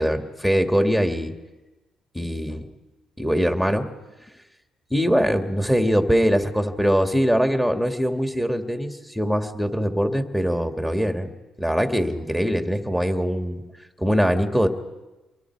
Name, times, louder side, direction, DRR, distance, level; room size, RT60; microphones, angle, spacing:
voice 1, 0.0-1.3 2.1-2.7 3.2-3.9 4.9-11.3 11.6-13.6 14.0-14.7, equal, 5° left, 5 dB, 2.3 m, -22 dB
29.0 x 23.0 x 4.8 m, 1.1 s
cardioid pair, 85°, 0 cm